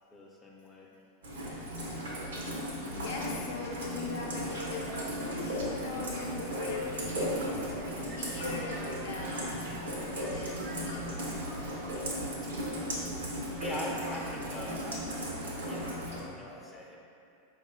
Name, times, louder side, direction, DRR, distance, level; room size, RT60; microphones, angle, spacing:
voice 1, 0.1-0.9 12.4-12.5 13.6-15.1 15.6-17.0, left 1 dB, 15° left, -2 dB, 0.6 m, -42 dB
Rain, 1.2-16.2, equal, 80° right, 0.8 m, -36 dB
voice 2, 2.7-11.1, left 3 dB, 70° left, -1 dB, 0.6 m, -41 dB
Subway metro underground, 3.0-13.7, right 1 dB, 45° right, 0.5 m, -46 dB
4.7 x 2.4 x 3.7 m, 2.6 s
hypercardioid pair, 95°, 0 cm